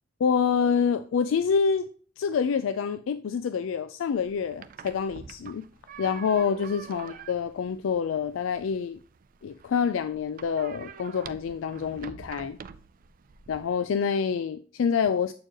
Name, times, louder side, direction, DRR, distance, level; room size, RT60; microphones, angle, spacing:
voice 1, 0.2-1.9 2.2-5.7 6.0-9.0 9.4-12.6 13.5-15.3, left 6 dB, 85° left, 0.3 m, -27 dB
sound 1, 4.2-13.7, right 6 dB, 45° right, 0.4 m, -46 dB
7.6 x 4.5 x 2.9 m
head